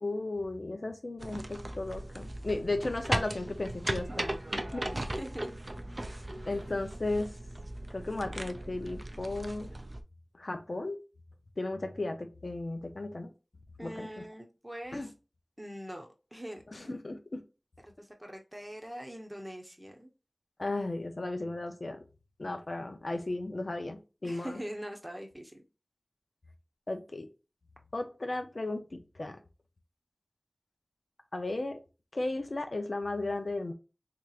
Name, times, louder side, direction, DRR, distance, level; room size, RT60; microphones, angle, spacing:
voice 1, 0.0-4.9 6.5-7.3 7.9-9.7 10.4-11.0 11.6-13.3 13.8-14.2 14.9-15.1 16.7-17.4 20.6-22.0 22.4-24.6 26.9-27.3 27.9-29.4 31.3-31.8 32.1-33.7, left 2 dB, 70° left, 5 dB, 0.6 m, -35 dB
sound 1, 1.2-10.0, right 1 dB, 45° right, 0.5 m, -37 dB
voice 2, 4.9-5.5 13.8-15.1 15.6-17.0 17.8-20.1 24.2-25.6, equal, 15° right, 3 dB, 0.9 m, -43 dB
3.5 x 2.9 x 2.4 m, 0.30 s
wide cardioid pair, 50°, 0 cm